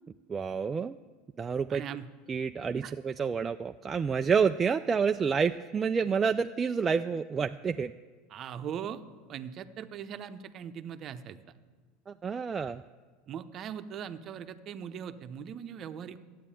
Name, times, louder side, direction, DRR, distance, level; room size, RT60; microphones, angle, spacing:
voice 1, 0.3-1.0 1.4-1.8 2.3-7.9 12.1-12.8, right 6 dB, 25° right, 7 dB, 0.4 m, -29 dB
voice 2, 1.7-2.1 2.8-2.9 8.3-9.0 9.3-11.4 13.3-16.2, right 8 dB, 40° right, 11 dB, 0.8 m, -40 dB
12.5 x 9.4 x 8.9 m, 1.5 s
supercardioid pair, 110°, 0 cm